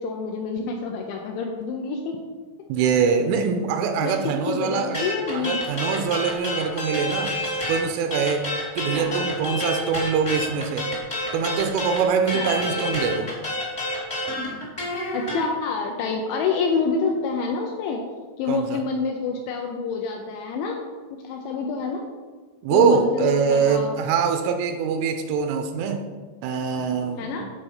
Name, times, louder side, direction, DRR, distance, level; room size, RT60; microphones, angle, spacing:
voice 1, 0.0-2.2 4.0-5.6 8.9-9.3 12.3-12.6 15.1-18.0 18.4-20.8 21.2-22.0 22.7-24.0 26.8-27.4, left 4 dB, 80° left, 2 dB, 2.7 m, -27 dB
voice 2, 2.7-5.1 5.3-7.3 7.7-8.5 8.8-10.9 11.3-13.3 18.5-18.8 22.6-26.1 26.4-27.4, right 6 dB, 85° right, 6 dB, 3.0 m, -23 dB
sound 1, 4.9-7.8 8.1-15.4, left 1 dB, 65° left, 0.6 m, -28 dB
12.5 x 4.3 x 5.6 m, 1.4 s
omnidirectional pair, 5.9 m